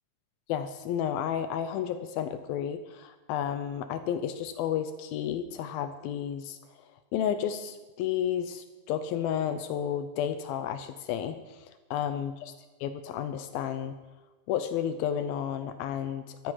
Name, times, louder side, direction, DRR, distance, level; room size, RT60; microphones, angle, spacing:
voice 1, 0.5-6.6 7.1-12.5 12.8-13.9 14.5-16.5, left 9 dB, 80° left, 10 dB, 2.3 m, -32 dB
13.0 x 13.0 x 5.7 m, 1.2 s
omnidirectional pair, 4.7 m